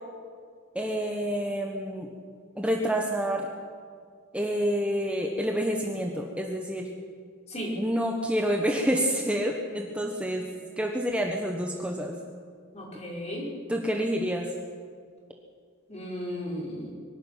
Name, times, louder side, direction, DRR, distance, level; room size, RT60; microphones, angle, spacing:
voice 1, 0.7-2.1 2.6-3.5 4.3-7.0 7.8-10.5 10.8-12.2 13.7-14.5, equal, 5° right, 1 dB, 1.3 m, -28 dB
voice 2, 12.7-13.5 15.9-16.9, equal, 30° left, -3 dB, 5.5 m, -35 dB
23.5 x 12.5 x 9.0 m, 2.1 s
head